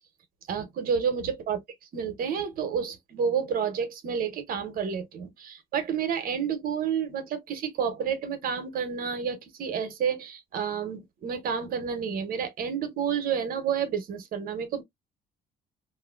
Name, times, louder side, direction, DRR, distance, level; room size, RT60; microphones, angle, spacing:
voice 1, 0.5-1.6 1.9-14.8, right 7 dB, 60° right, 1.0 m, -30 dB
2.8 x 2.5 x 2.4 m
cardioid pair, 110°, 17 cm